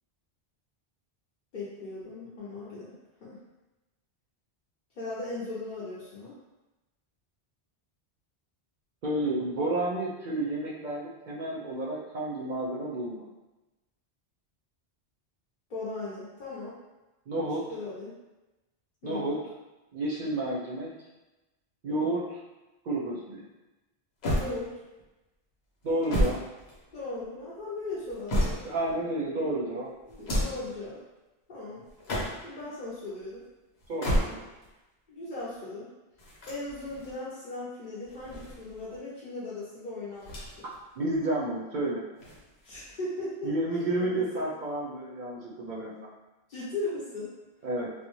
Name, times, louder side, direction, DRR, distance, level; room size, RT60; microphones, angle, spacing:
voice 1, 1.5-2.9 3.2-3.4 5.0-6.4 15.7-16.8 17.7-18.1 19.0-19.4 24.3-24.7 26.9-28.6 30.1-31.0 31.5-31.8 32.4-33.4 35.1-35.9 36.5-40.5 42.6-43.5 44.1-44.5 46.5-47.3, left 2 dB, 55° left, -9 dB, 0.7 m, -38 dB
voice 2, 9.0-13.2 17.3-17.6 19.0-19.4 19.9-20.9 21.8-22.4 22.9-23.4 25.8-26.4 28.6-29.9 33.9-34.4 40.6-42.0 43.4-45.9 47.6-47.9, right 1 dB, 55° right, -4 dB, 0.6 m, -31 dB
sound 1, 24.2-25.0 25.8-27.2 27.9-28.9 30.1-30.7 31.9-32.6 33.8-34.7 36.2-37.1 38.0-39.0 40.2-40.8 41.1-41.2 42.2-42.9, equal, 75° left, 1.0 m, -31 dB
2.6 x 2.1 x 2.9 m, 1.0 s
omnidirectional pair, 1.1 m